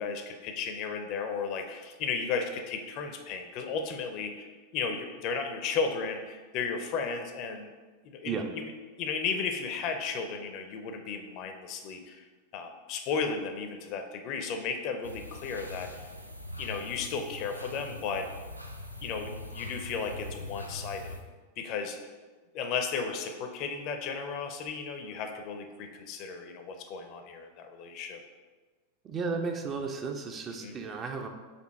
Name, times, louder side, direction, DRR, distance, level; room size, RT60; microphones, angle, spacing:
voice 1, 0.0-4.5 4.7-7.7 8.0-8.7 9.0-12.2 12.5-15.9 16.6-18.3 19.0-21.2 21.6-22.0 22.5-28.2 30.6-30.7, left 5 dB, 40° left, 5 dB, 0.5 m, -34 dB
sound 1, 15.0-21.2, left 1 dB, 90° right, 0.4 m, -42 dB
voice 2, 29.0-31.3, right 4 dB, 25° right, 4 dB, 0.4 m, -34 dB
4.2 x 2.8 x 4.2 m, 1.4 s
figure-of-eight pair, 90°, 0 cm